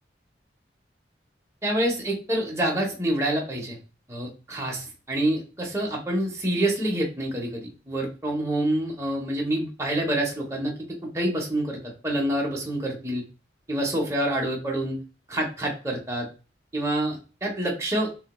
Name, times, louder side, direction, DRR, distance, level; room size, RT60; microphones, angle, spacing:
voice 1, 1.6-3.8 4.1-10.7 11.0-13.2 13.7-15.0 15.3-16.3 16.7-18.1, right 1 dB, 15° right, -1 dB, 0.6 m, -27 dB
3.2 x 2.2 x 2.9 m, 0.33 s
head